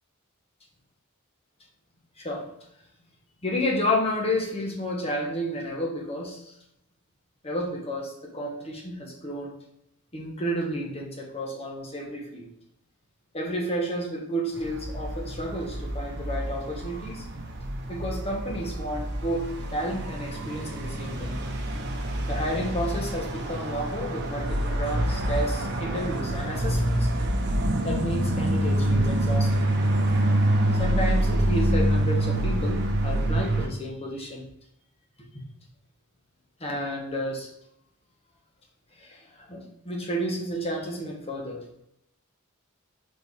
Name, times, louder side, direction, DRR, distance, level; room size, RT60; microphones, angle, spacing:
voice 1, 3.4-6.5 7.4-9.5 10.1-12.5 13.3-17.2 17.9-21.4 22.3-27.1 27.8-29.6 30.7-34.4 36.6-37.5 39.0-41.6, equal, 30° left, 0 dB, 1.3 m, -31 dB
sound 1, 14.6-33.7, right 1 dB, 55° right, 0.9 m, -26 dB
4.6 x 4.3 x 4.7 m, 0.78 s
head